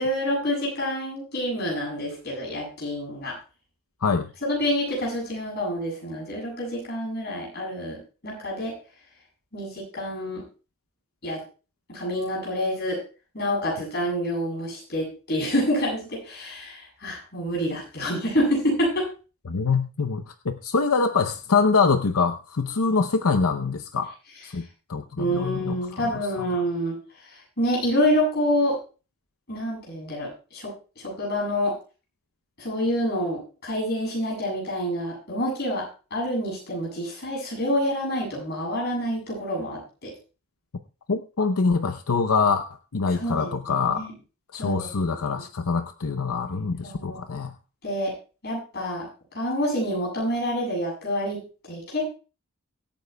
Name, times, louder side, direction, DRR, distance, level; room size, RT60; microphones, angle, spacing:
voice 1, 0.0-3.4 4.4-8.8 9.5-10.4 11.2-11.4 11.9-13.0 13.3-19.1 25.2-28.8 29.5-31.7 32.6-35.9 36.1-40.1 43.1-44.1 44.6-45.4 46.8-47.2 47.8-48.1 48.4-52.1, equal, 50° left, -2 dB, 7.6 m, -27 dB
voice 2, 19.5-24.1 24.4-24.6 24.9-25.8 41.1-42.6 42.9-44.0 44.5-47.5, left 4 dB, 90° left, 9 dB, 0.7 m, -24 dB
24.0 x 9.1 x 2.3 m, 0.34 s
head